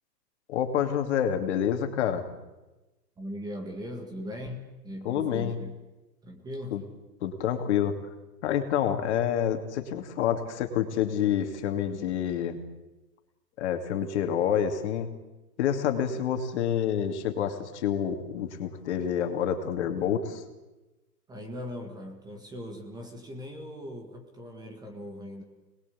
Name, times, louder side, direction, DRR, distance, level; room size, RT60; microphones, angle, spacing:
voice 1, 0.5-2.3 5.0-5.6 6.7-6.8 7.2-8.0 8.4-12.6 13.6-15.1 15.6-20.4, left 9 dB, 40° left, 6 dB, 2.8 m, -28 dB
voice 2, 3.2-5.8 6.2-6.8 21.3-25.4, equal, 10° right, 3 dB, 1.8 m, -39 dB
26.0 x 21.0 x 8.6 m, 1.1 s
hypercardioid pair, 160°, 49 cm